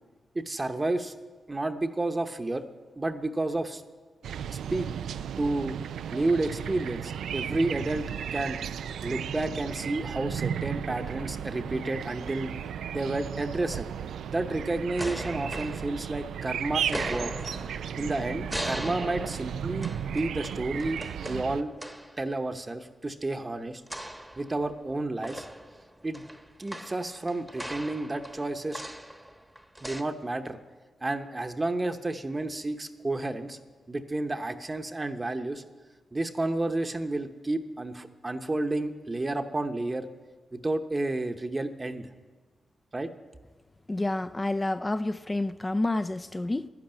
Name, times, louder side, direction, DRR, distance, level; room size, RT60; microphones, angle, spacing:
voice 1, 0.3-1.1 1.5-2.6 3.0-3.8 4.5-4.9 5.4-5.7 6.1-8.1 8.3-8.6 9.0-12.5 12.9-13.9 14.3-17.3 18.0-21.7 22.2-23.8 24.4-25.5 26.0-26.2 26.6-28.8 29.8-30.6 31.0-33.6 33.9-35.6 36.1-40.1 40.5-42.1 42.9-43.1, right 2 dB, 25° right, 0.9 m, -31 dB
sound 1, 4.2-21.6, right 8 dB, 90° right, 0.4 m, -35 dB
sound 2, 14.6-16.4 16.8-22.2 23.9-24.9 25.2-30.0, right 1 dB, 5° right, 1.0 m, -40 dB
voice 2, 43.9-46.7, left 2 dB, 20° left, 0.4 m, -29 dB
12.0 x 11.0 x 8.9 m
cardioid pair, 85°, 0 cm